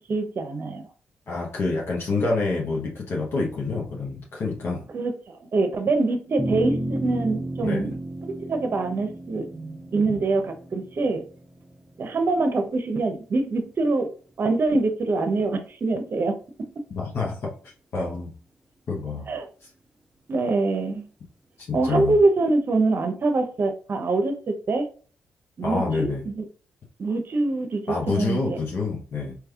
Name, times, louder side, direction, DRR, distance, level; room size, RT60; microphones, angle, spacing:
voice 1, 0.1-0.8 4.9-8.0 8.2-11.2 12.0-14.1 14.4-16.7 19.3-19.5 20.3-21.1 21.7-24.9 25.6-26.4 27.0-28.6, right 3 dB, 50° right, 0.7 m, -24 dB
voice 2, 1.3-4.9 7.6-7.9 17.0-18.3 18.9-19.3 21.6-22.1 25.6-26.2 27.9-29.3, left 3 dB, 60° left, 0.8 m, -27 dB
sound 1, 6.4-12.9, right 1 dB, 10° right, 0.7 m, -33 dB
3.3 x 3.0 x 2.3 m
supercardioid pair, 55°, 4 cm